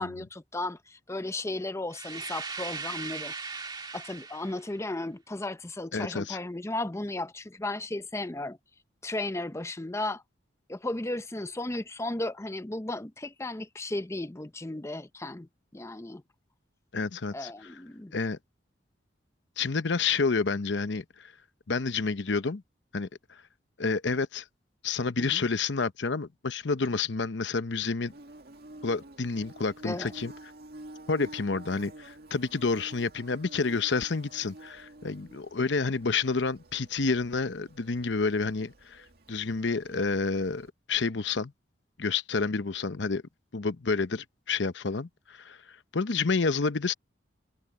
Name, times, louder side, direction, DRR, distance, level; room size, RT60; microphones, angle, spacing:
voice 1, 0.0-3.3 3.9-8.6 9.0-10.2 10.7-16.2 17.3-18.1 25.2-25.5 29.8-30.1, left 2 dB, 15° left, 0.6 m, -35 dB
sound 1, 1.9-4.7, right 4 dB, 25° right, 1.8 m, -38 dB
voice 2, 5.9-6.4 16.9-17.5 18.1-18.4 19.6-21.3 21.7-22.6 22.9-23.1 23.8-24.4 24.8-28.1 28.8-30.3 31.1-39.0 39.3-41.5 42.0-43.2 43.5-45.6 45.9-46.9, left 4 dB, 70° left, 0.8 m, -29 dB
Bird / Buzz, 28.1-40.7, right 1 dB, 55° right, 2.1 m, -50 dB
head